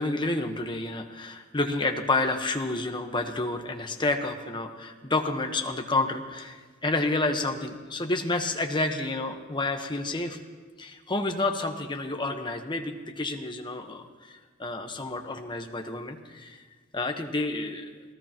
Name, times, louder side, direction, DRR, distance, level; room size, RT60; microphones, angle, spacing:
voice 1, 0.0-10.4 10.8-16.6 16.9-17.9, left 2 dB, 25° left, 4 dB, 1.1 m, -29 dB
26.5 x 17.5 x 3.0 m, 1.4 s
head